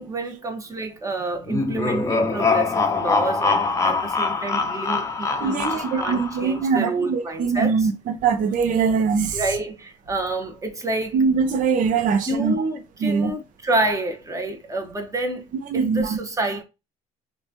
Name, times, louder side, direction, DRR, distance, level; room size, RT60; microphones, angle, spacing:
voice 1, 0.0-7.8 9.3-11.2 12.3-15.4 15.7-16.6, right 2 dB, 20° right, 0.8 m, -28 dB
sound 1, 1.5-6.6, left 4 dB, 20° left, 0.5 m, -23 dB
voice 2, 5.4-9.4 11.1-12.5 13.0-13.3 15.7-16.2, right 5 dB, 65° right, 0.7 m, -22 dB
2.9 x 2.3 x 2.5 m
supercardioid pair, 85°, 15 cm